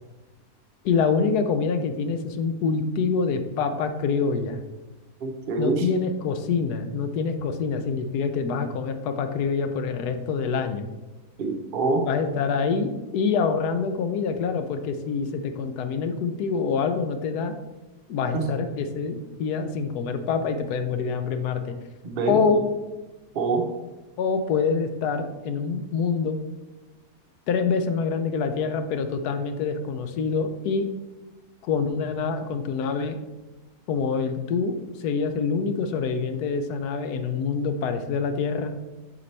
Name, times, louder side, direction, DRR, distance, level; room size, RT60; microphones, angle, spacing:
voice 1, 0.8-4.6 5.6-10.9 12.0-17.5 18.1-21.7 22.3-22.6 24.2-26.4 27.5-30.9 31.6-33.2 33.9-38.7, left 5 dB, 75° left, 8 dB, 1.1 m, -26 dB
voice 2, 5.2-5.9 11.4-12.1 18.3-18.5 22.0-22.6 23.3-23.7, right 3 dB, 45° right, 2 dB, 0.7 m, -25 dB
6.8 x 5.2 x 3.2 m, 1.1 s
omnidirectional pair, 1.8 m